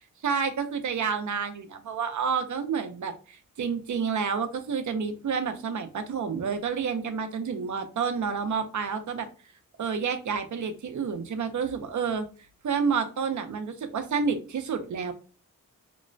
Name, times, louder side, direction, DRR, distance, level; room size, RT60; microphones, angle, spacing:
voice 1, 0.2-9.3 9.8-12.3 12.6-15.1, right 6 dB, 55° right, 7 dB, 0.5 m, -29 dB
2.9 x 2.1 x 2.5 m, 0.37 s
wide cardioid pair, 120°, 35 cm